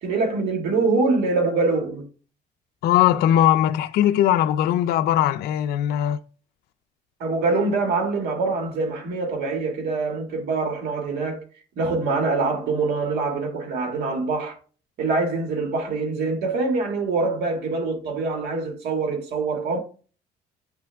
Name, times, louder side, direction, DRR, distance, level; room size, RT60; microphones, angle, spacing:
voice 1, 0.0-2.1 7.2-11.4 11.8-14.6 15.0-19.8, right 3 dB, 75° right, 1.8 m, -24 dB
voice 2, 2.8-6.2, left 11 dB, 70° left, 0.4 m, -20 dB
8.6 x 3.4 x 3.3 m
cardioid pair, 110°, 17 cm